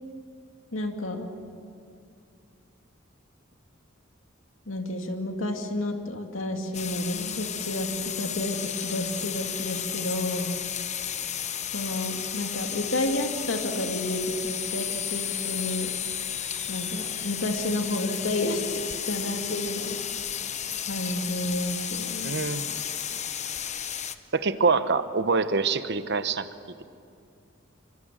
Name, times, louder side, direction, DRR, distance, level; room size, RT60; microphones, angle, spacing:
voice 1, 0.7-1.3 4.7-10.5 11.7-15.9 16.7-18.8 19.1-20.0 20.9-22.4, left 1 dB, 75° left, 3 dB, 2.4 m, -30 dB
sound 1, 6.7-24.1, left 9 dB, 35° left, 1.0 m, -33 dB
voice 2, 22.2-22.7 24.3-26.5, right 4 dB, 60° right, 11 dB, 1.1 m, -25 dB
28.0 x 25.0 x 7.5 m, 2.4 s
head